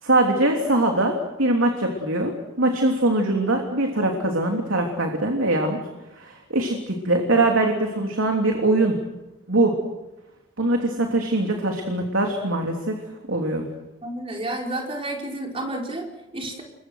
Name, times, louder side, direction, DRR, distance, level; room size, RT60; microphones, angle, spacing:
voice 1, 0.0-5.8 6.1-9.0 9.5-9.7 10.6-13.0 13.3-13.6, right 2 dB, 85° right, 2 dB, 3.2 m, -22 dB
voice 2, 14.0-16.6, right 1 dB, 30° right, 0 dB, 4.8 m, -31 dB
28.5 x 23.5 x 6.5 m, 1.0 s
head